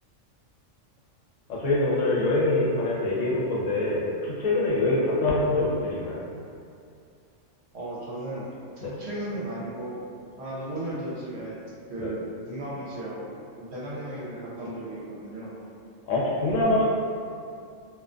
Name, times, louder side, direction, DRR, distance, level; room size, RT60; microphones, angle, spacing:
voice 1, 1.5-6.2 8.8-8.9 12.0-12.1 16.1-16.8, left 2 dB, 85° left, -5 dB, 1.0 m, -24 dB
voice 2, 7.7-8.5 8.8-10.0 10.4-13.3 13.6-15.5, right 1 dB, 65° right, -6 dB, 0.8 m, -35 dB
2.4 x 2.2 x 2.4 m, 2.4 s
omnidirectional pair, 1.3 m